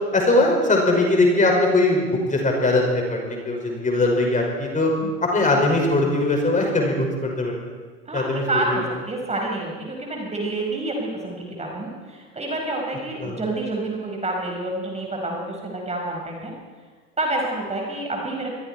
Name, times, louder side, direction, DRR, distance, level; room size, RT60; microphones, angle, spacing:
voice 1, 0.1-4.9 5.2-7.5 8.1-8.4 8.7-8.8 13.2-13.4, left 2 dB, 15° left, 0 dB, 5.6 m, -20 dB
voice 2, 8.0-16.5 17.2-18.5, right 2 dB, 15° right, 0 dB, 5.0 m, -28 dB
27.0 x 22.5 x 4.5 m, 1.5 s
figure-of-eight pair, 85°, 45 cm